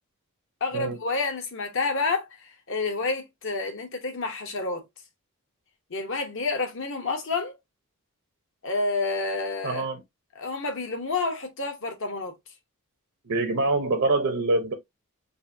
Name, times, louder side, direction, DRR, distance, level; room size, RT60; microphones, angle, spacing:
voice 1, 0.6-2.3 2.7-4.8 5.9-7.6 8.6-9.8 10.3-12.3, left 3 dB, 60° left, 1.1 m, -29 dB
voice 2, 9.6-10.0 13.2-14.7, right 2 dB, 65° right, 0.8 m, -25 dB
5.3 x 2.6 x 2.7 m
head